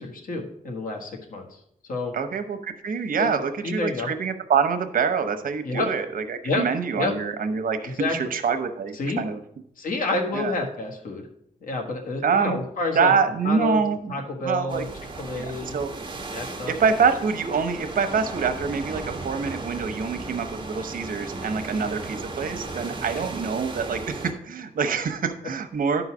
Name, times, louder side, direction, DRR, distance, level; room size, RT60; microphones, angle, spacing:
voice 1, 0.0-1.6 1.9-2.1 3.2-3.4 3.6-4.1 5.6-5.9 6.4-6.6 6.9-7.1 7.8-8.1 8.9-9.2 9.8-11.3 11.6-13.1 13.4-13.8 14.1-14.9 15.2-15.8 16.3-16.7, left 3 dB, 80° left, 2 dB, 1.6 m, -29 dB
voice 2, 2.1-9.4 10.3-10.6 12.2-12.6 12.9-14.8 15.4-15.9 16.7-26.0, right 5 dB, 80° right, 8 dB, 0.9 m, -25 dB
sound 1, 14.7-24.3, right 2 dB, 35° right, 1.2 m, -35 dB
11.0 x 4.0 x 6.1 m, 0.73 s
wide cardioid pair, 120°, 14 cm